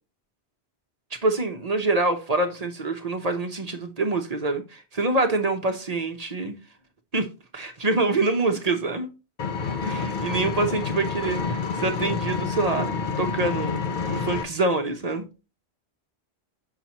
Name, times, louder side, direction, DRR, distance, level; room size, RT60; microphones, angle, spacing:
voice 1, 1.2-6.6 7.1-7.3 7.5-9.1 9.8-15.3, right 3 dB, 40° right, 0.8 m, -26 dB
Engine, 9.4-14.4, left 5 dB, 50° left, 0.8 m, -28 dB
5.8 x 5.7 x 2.8 m
omnidirectional pair, 1.1 m